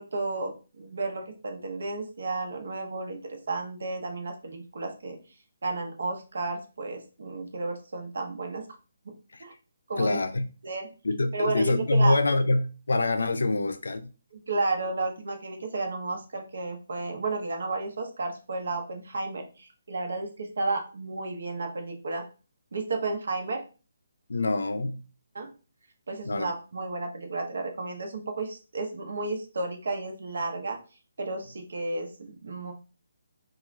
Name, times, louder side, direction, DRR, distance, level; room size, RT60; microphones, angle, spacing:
voice 1, 0.0-5.2 5.6-8.6 9.4-9.5 9.9-10.2 10.6-10.9 11.3-12.1 14.3-22.2 22.7-23.6 25.3-25.5 26.1-30.8 31.2-32.7, right 3 dB, 65° right, 0.7 m, -32 dB
voice 2, 10.0-10.5 11.0-14.1 24.3-25.0 26.2-26.5, left 2 dB, 85° left, 0.4 m, -25 dB
2.4 x 2.3 x 3.1 m
hypercardioid pair, 175°, 0 cm